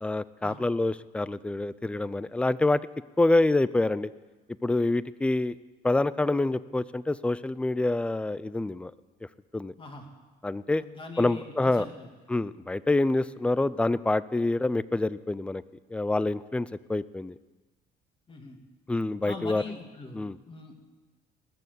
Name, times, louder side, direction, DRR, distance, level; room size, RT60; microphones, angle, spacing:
voice 1, 0.0-2.8 3.2-4.1 4.6-5.6 5.8-8.9 9.5-9.7 10.4-10.8 11.2-11.9 12.3-15.6 15.9-17.4 18.9-19.6 20.1-20.4, left 2 dB, 5° left, 18 dB, 0.4 m, -26 dB
voice 2, 10.8-12.1 18.3-18.6 19.3-20.8, left 3 dB, 30° left, 3 dB, 2.4 m, -42 dB
20.0 x 6.9 x 8.1 m, 1.2 s
cardioid pair, 110°, 17 cm